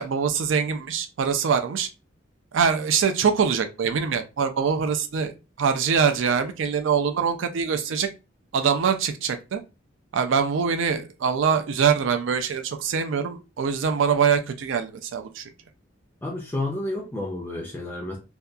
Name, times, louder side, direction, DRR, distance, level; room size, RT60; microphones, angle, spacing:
voice 1, 0.0-1.9 2.5-5.3 5.6-8.1 8.5-9.6 10.1-15.5, right 6 dB, 65° right, 0.4 m, -23 dB
voice 2, 16.2-18.2, left 2 dB, 10° left, 0.4 m, -30 dB
2.7 x 2.2 x 2.3 m
head